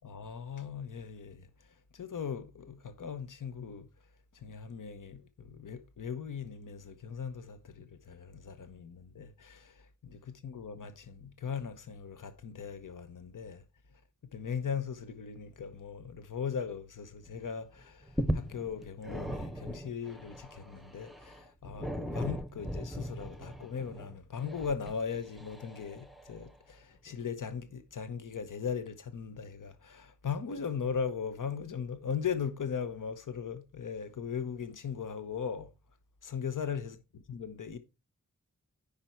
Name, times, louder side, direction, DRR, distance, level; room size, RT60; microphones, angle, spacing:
voice 1, 0.0-1.5 1.9-3.9 4.3-13.6 13.9-14.0 14.3-35.7 36.2-37.8, left 6 dB, 85° left, 1.0 m, -38 dB
sound 1, 17.2-17.5 17.8-26.4 27.1-27.2, equal, ahead, 0.7 m, -39 dB
9.8 x 5.2 x 4.5 m
wide cardioid pair, 105°, 31 cm